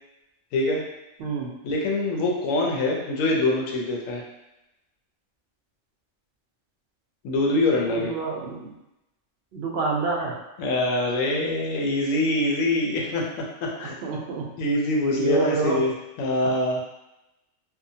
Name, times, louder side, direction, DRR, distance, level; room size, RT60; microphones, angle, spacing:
voice 1, 0.5-0.8 1.6-4.2 7.2-8.1 10.6-13.2 13.6-14.0 14.6-15.9 16.2-16.8, left 2 dB, 85° left, -1 dB, 1.0 m, -24 dB
voice 2, 1.2-1.5 7.8-8.7 9.5-10.4 13.8-14.5 15.2-15.8 16.4-16.5, right 4 dB, 60° right, -2 dB, 0.7 m, -28 dB
2.7 x 2.1 x 2.6 m, 0.95 s
omnidirectional pair, 1.4 m